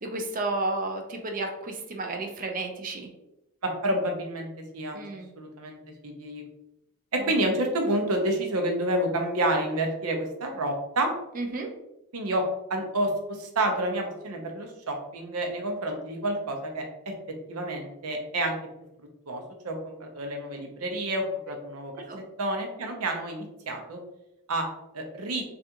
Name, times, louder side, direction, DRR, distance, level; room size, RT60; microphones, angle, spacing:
voice 1, 0.0-3.1 4.9-5.3 7.2-7.3 11.3-11.7 22.1-22.2, right 2 dB, 40° right, 3 dB, 0.5 m, -32 dB
voice 2, 3.6-5.0 5.4-5.8 6.0-6.4 7.1-11.1 12.1-12.4 12.7-16.8 17.5-18.6 19.3-21.9 22.4-24.0 24.5-24.7 24.9-25.4, right 1 dB, 80° right, 3 dB, 0.7 m, -29 dB
3.4 x 2.4 x 2.8 m, 0.87 s
head